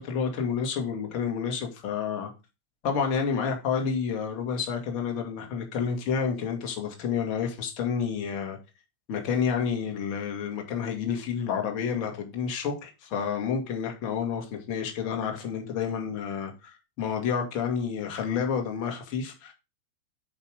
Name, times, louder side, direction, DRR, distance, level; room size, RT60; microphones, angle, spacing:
voice 1, 0.0-2.3 2.8-8.6 9.1-19.5, left 6 dB, 40° left, 2.2 m, -29 dB
8.0 x 5.4 x 3.5 m
figure-of-eight pair, 90°, 0 cm